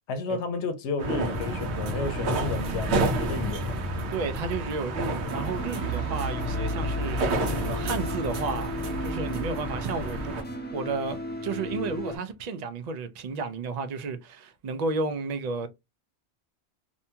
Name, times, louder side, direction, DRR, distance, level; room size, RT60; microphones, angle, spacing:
voice 1, 0.1-3.8, left 4 dB, 85° left, 0.9 m, -32 dB
sound 1, 1.0-10.4, right 1 dB, 80° right, 1.0 m, -29 dB
voice 2, 4.1-7.2 7.7-10.3 10.7-15.7, right 4 dB, 55° right, 0.4 m, -32 dB
sound 2, 5.3-12.2, left 1 dB, 10° left, 0.6 m, -36 dB
2.7 x 2.2 x 2.7 m
omnidirectional pair, 1.1 m